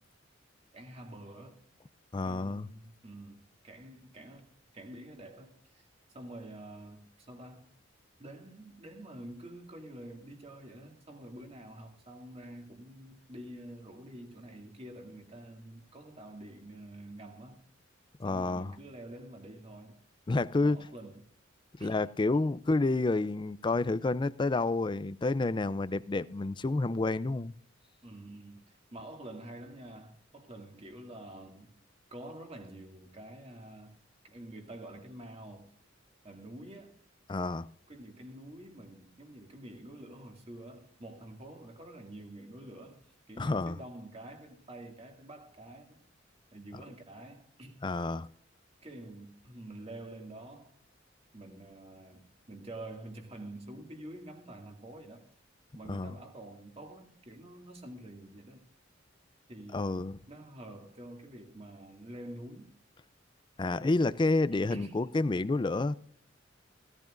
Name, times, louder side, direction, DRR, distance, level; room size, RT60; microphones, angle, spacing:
voice 1, 0.7-1.6 2.2-4.5 4.7-5.9 6.1-7.7 8.2-17.6 18.2-20.0 20.6-21.3 21.8-22.0 22.4-22.5 28.0-31.7 32.1-33.9 34.2-35.7 36.2-36.9 37.9-43.0 43.3-46.0 46.5-47.8 48.8-50.7 51.3-55.3 55.7-58.7 59.5-62.7 64.7-65.1, right 1 dB, 30° right, 2.1 m, -47 dB
voice 2, 2.1-2.7 18.2-18.7 20.3-20.8 21.8-27.5 37.3-37.7 43.4-43.8 47.8-48.3 55.9-56.1 59.7-60.2 63.6-65.9, left 2 dB, 25° left, 0.4 m, -29 dB
16.5 x 13.5 x 2.5 m
head